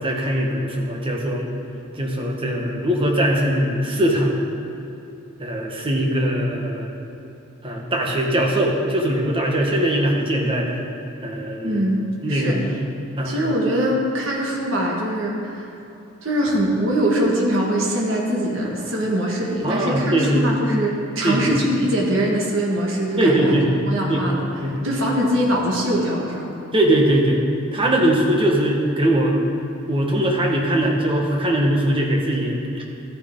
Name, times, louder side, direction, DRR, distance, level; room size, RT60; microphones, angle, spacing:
voice 1, 0.0-1.5 1.9-4.3 5.4-6.9 7.6-10.8 11.2-11.8 12.2-12.7 13.2-13.3 19.6-20.4 21.2-21.5 23.2-23.6 24.1-24.3 24.6-24.8 26.7-27.4 27.7-29.4 29.9-32.8, right 1 dB, 25° right, -1 dB, 1.3 m, -21 dB
voice 2, 11.6-12.6 13.2-15.7 16.2-23.5 23.8-24.5 24.8-26.5, right 1 dB, 65° right, -3 dB, 1.7 m, -22 dB
14.0 x 9.1 x 3.8 m, 3.0 s
head